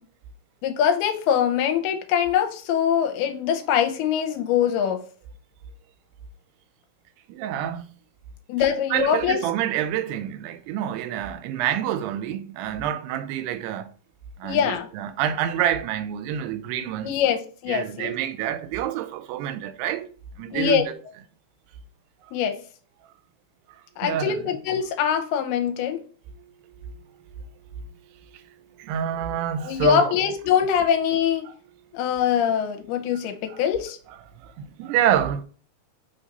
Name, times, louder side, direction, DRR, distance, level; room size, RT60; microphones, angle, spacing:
voice 1, 0.6-5.0 8.5-9.4 14.4-14.9 17.0-18.1 20.5-20.8 22.3-22.6 24.0-26.0 29.7-31.5 31.9-34.0, left 8 dB, 80° left, 2.6 m, -23 dB
voice 2, 7.3-7.9 8.9-13.9 14.4-17.1 17.7-20.1 20.4-20.9 24.0-24.4 26.8-27.0 28.3-28.5 28.8-30.1 31.5-31.6 33.5-33.6 34.4-35.4, right 10 dB, 85° right, 2.6 m, -27 dB
5.7 x 4.0 x 4.0 m
omnidirectional pair, 4.7 m